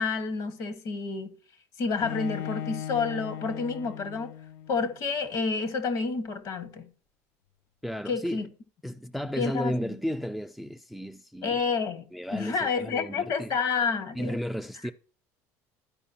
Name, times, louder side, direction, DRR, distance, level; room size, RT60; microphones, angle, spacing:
voice 1, 0.0-1.3 1.8-4.3 4.7-6.9 8.1-8.5 9.4-10.0 11.4-12.0 12.3-14.4, left 5 dB, 60° left, 1.6 m, -29 dB
Bowed string instrument, 2.0-5.0, left 10 dB, 85° left, 0.3 m, -38 dB
voice 2, 7.8-8.5 8.8-11.6 12.1-13.5 14.1-14.9, equal, ahead, 0.3 m, -33 dB
13.0 x 4.9 x 2.7 m
supercardioid pair, 115°, 8 cm